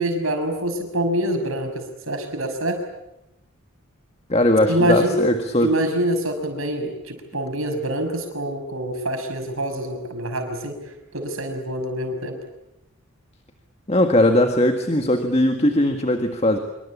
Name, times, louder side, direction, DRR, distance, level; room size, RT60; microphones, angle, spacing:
voice 1, 0.0-2.8 4.7-5.2 5.6-10.8 11.1-12.4, right 1 dB, 75° right, 5 dB, 6.2 m, -25 dB
voice 2, 4.3-5.8 13.9-16.6, left 1 dB, 30° left, 5 dB, 1.8 m, -19 dB
26.0 x 24.5 x 8.6 m, 0.87 s
head